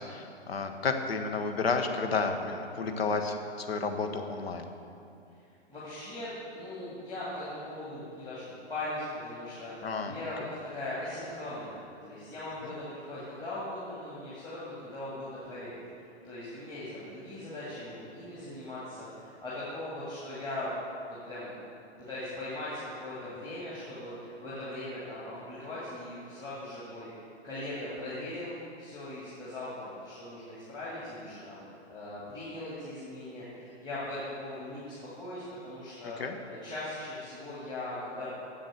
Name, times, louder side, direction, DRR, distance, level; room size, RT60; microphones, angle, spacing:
voice 1, 0.0-4.6 9.8-10.1 12.6-12.7 36.2-36.4, left 4 dB, 65° left, 5 dB, 1.1 m, -31 dB
voice 2, 5.7-8.4 8.7-15.8 16.2-20.7 21.2-21.6 22.1-27.1 27.4-31.6 31.9-36.2 36.5-38.3, left 1 dB, 15° left, -10 dB, 2.0 m, -39 dB
7.5 x 7.3 x 6.4 m, 2.6 s
figure-of-eight pair, 115°, 33 cm